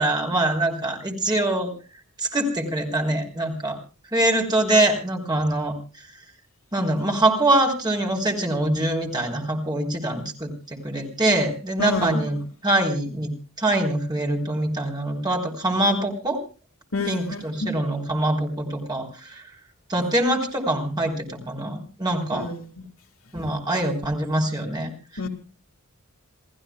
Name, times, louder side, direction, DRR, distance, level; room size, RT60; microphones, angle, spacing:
voice 1, 0.0-1.7 2.2-3.8 4.1-5.8 6.7-12.4 12.6-13.3 13.6-16.4 17.1-19.4 19.9-22.5 23.3-24.9, right 1 dB, 20° right, 1 dB, 3.8 m, -24 dB
voice 2, 11.8-12.2 16.9-17.7 22.3-22.8 25.2-25.3, left 3 dB, 65° left, 5 dB, 2.0 m, -29 dB
28.5 x 15.5 x 2.3 m, 0.35 s
head